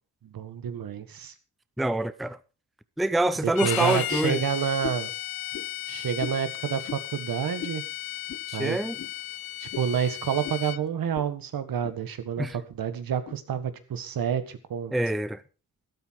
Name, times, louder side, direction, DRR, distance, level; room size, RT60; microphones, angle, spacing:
voice 1, 0.2-1.3 3.4-5.1 5.9-7.8 8.5-8.8 9.6-14.9, right 8 dB, 75° right, 1.8 m, -29 dB
voice 2, 1.8-2.4 3.0-4.4 8.5-9.0 12.4-12.6 14.9-15.4, right 1 dB, ahead, 0.6 m, -26 dB
Bowed string instrument, 3.5-10.8, left 14 dB, 80° left, 0.6 m, -35 dB
sound 1, 4.1-4.4 4.8-5.1 5.5-5.7 6.2-6.4 6.8-7.1 7.6-7.8 8.3-8.5 9.0-9.1 9.7-9.9 10.4-10.6 11.1-11.3 11.6-12.0 12.5-12.6 13.3-13.4, left 7 dB, 45° left, 1.2 m, -38 dB
12.5 x 12.5 x 4.7 m
wide cardioid pair, 125°, 35 cm